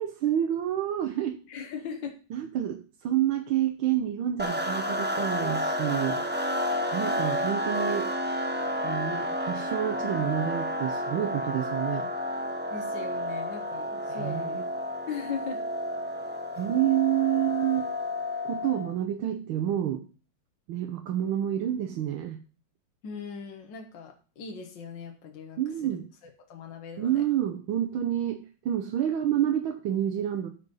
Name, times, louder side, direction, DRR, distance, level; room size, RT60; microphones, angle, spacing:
voice 1, 0.0-1.4 2.3-6.2 6.9-8.1 8.8-12.1 14.1-14.6 16.6-17.8 18.5-20.0 20.7-22.4 25.6-26.1 27.0-30.5, right 11 dB, 80° right, 5 dB, 1.6 m, -28 dB
voice 2, 1.5-2.2 12.7-14.6 15.1-15.6 23.0-25.6 26.5-27.2, left 6 dB, 65° left, 3 dB, 1.8 m, -39 dB
sound 1, 4.4-18.9, left 1 dB, 10° right, 0.5 m, -31 dB
13.5 x 5.4 x 5.4 m, 0.37 s
omnidirectional pair, 2.3 m